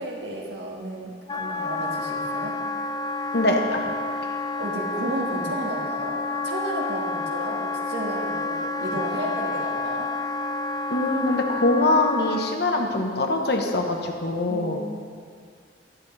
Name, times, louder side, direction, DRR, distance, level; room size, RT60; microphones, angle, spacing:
voice 1, 0.0-2.6 4.6-6.2 6.4-10.1 14.5-14.8, right 1 dB, 65° right, -1 dB, 1.8 m, -32 dB
Wind instrument woodwind instrument, 1.3-12.6, left 3 dB, 20° left, 0.4 m, -29 dB
voice 2, 3.3-3.9 10.9-14.8, left 2 dB, 60° left, 3 dB, 1.2 m, -23 dB
13.5 x 11.0 x 3.4 m, 2.1 s
head